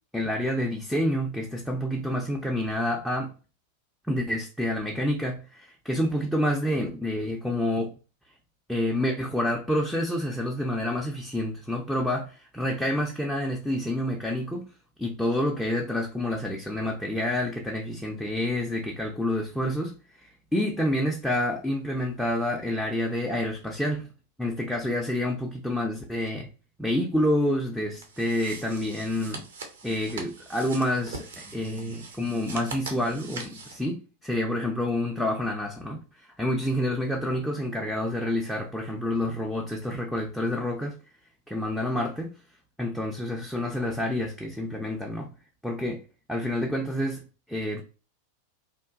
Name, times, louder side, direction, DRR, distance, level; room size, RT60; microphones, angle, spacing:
voice 1, 0.1-3.3 4.1-7.9 8.7-14.6 15.0-24.1 24.4-26.5 26.8-29.4 29.8-41.0 41.5-42.3 42.8-45.3 45.6-46.0 46.3-47.8, left 1 dB, ahead, 0.4 m, -28 dB
sound 1, 27.9-33.8, right 4 dB, 65° right, 0.5 m, -42 dB
2.8 x 2.2 x 2.3 m
figure-of-eight pair, 90°, 0 cm